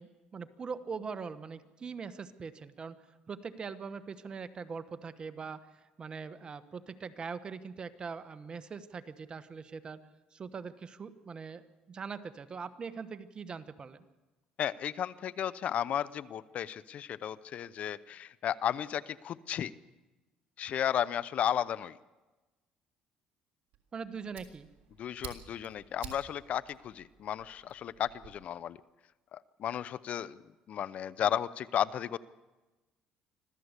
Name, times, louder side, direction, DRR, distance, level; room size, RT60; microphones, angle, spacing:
voice 1, 0.0-5.7 6.0-10.0 10.3-14.0 23.9-24.7, right 5 dB, 35° right, 12 dB, 1.3 m, -42 dB
voice 2, 14.6-19.7 20.6-22.0 25.0-28.8 29.3-30.4 30.7-32.2, left 10 dB, 55° left, 18 dB, 0.7 m, -34 dB
Fire, 23.7-28.3, right 10 dB, 65° right, 3.4 m, -51 dB
25.5 x 15.5 x 8.2 m, 1.1 s
cardioid pair, 100°, 3 cm